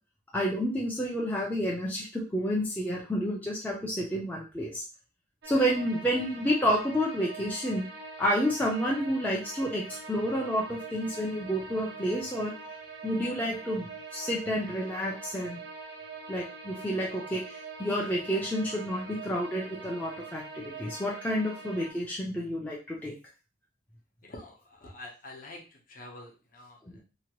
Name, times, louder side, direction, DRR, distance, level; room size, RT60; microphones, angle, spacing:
voice 1, 0.3-4.8 5.4-7.8 8.2-12.5 13.0-15.6 16.3-17.4 17.8-23.1 26.8-26.9, equal, 10° left, -4 dB, 0.4 m, -30 dB
sound 1, 5.4-21.9, right 4 dB, 55° right, 0.5 m, -44 dB
voice 2, 24.3-25.6 25.9-26.8, left 2 dB, 45° left, -1 dB, 0.7 m, -46 dB
2.8 x 2.2 x 2.9 m, 0.33 s
head